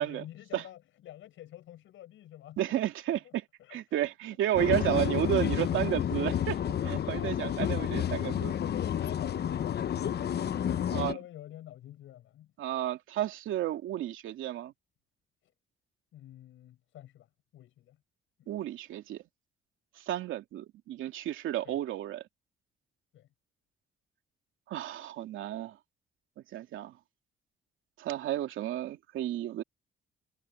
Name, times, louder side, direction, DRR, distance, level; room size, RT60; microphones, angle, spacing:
voice 1, 0.0-2.6 3.1-3.3 3.6-3.8 4.3-4.4 7.1-8.0 8.5-10.3 10.7-12.5 16.1-17.3 17.5-18.0 18.4-18.5 21.6-21.8 23.1-23.3, left 13 dB, 80° left, 7.9 m, -48 dB
voice 2, 2.6-3.4 3.7-6.6 6.8-8.5 10.9-11.2 12.6-14.7 18.5-19.2 20.0-22.2 24.7-25.8 26.5-26.9 28.0-29.6, right 13 dB, 85° right, 2.6 m, -32 dB
sound 1, 4.5-11.1, left 9 dB, 55° left, 1.0 m, -30 dB
cardioid pair, 90°, 20 cm